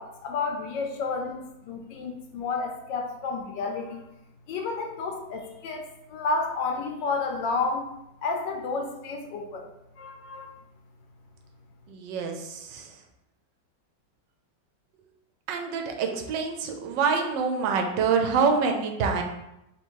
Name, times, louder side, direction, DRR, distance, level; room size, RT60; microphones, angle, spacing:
voice 1, 0.0-4.1 4.5-7.9 8.2-9.7 10.0-10.5, left 4 dB, 75° left, 3 dB, 1.1 m, -31 dB
voice 2, 11.9-12.9 15.5-19.2, right 5 dB, 75° right, 4 dB, 1.2 m, -26 dB
3.4 x 2.9 x 4.5 m, 0.87 s
omnidirectional pair, 2.1 m